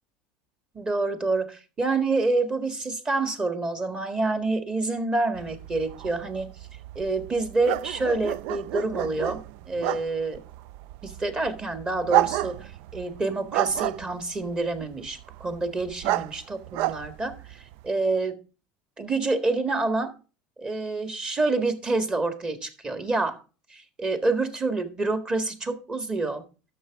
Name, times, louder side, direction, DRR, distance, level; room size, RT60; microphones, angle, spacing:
voice 1, 0.7-6.5 6.9-10.4 11.0-18.4 19.0-20.1 20.6-23.4 23.7-26.4, right 3 dB, 20° right, 8 dB, 1.6 m, -27 dB
sound 1, 5.4-17.9, right 16 dB, 65° right, 0.3 m, -31 dB
11.0 x 6.9 x 3.5 m, 0.33 s
supercardioid pair, 120°, 4 cm